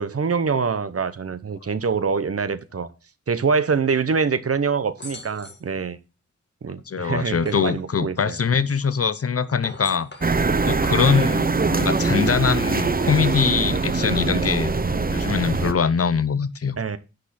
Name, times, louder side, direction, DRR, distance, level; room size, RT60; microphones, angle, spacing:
voice 1, 0.0-2.9 3.3-6.0 6.6-8.4 10.5-10.7 16.8-17.0, right 5 dB, 55° right, 0.9 m, -25 dB
sound 1, 5.0-5.7 7.0-7.9 9.4-10.4, left 2 dB, 35° left, 1.9 m, -40 dB
voice 2, 6.9-10.1 10.6-14.7 15.1-16.8, left 6 dB, 50° left, 0.7 m, -23 dB
sound 2, 10.2-15.7, right 4 dB, 30° right, 0.9 m, -22 dB
10.5 x 5.3 x 4.2 m
wide cardioid pair, 90°, 29 cm